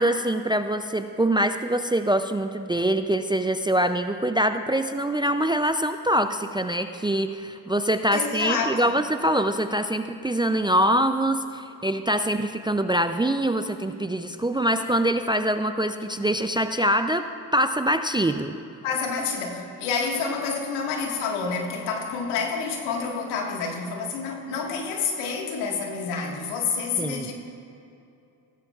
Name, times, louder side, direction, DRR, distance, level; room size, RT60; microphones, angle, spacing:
voice 1, 0.0-17.2 17.5-18.6 27.0-27.3, right 1 dB, 10° right, 8 dB, 0.3 m, -24 dB
voice 2, 8.1-8.9 18.8-27.3, left 5 dB, 90° left, 1 dB, 1.8 m, -28 dB
16.5 x 14.5 x 2.4 m, 2.6 s
supercardioid pair, 65°, 48 cm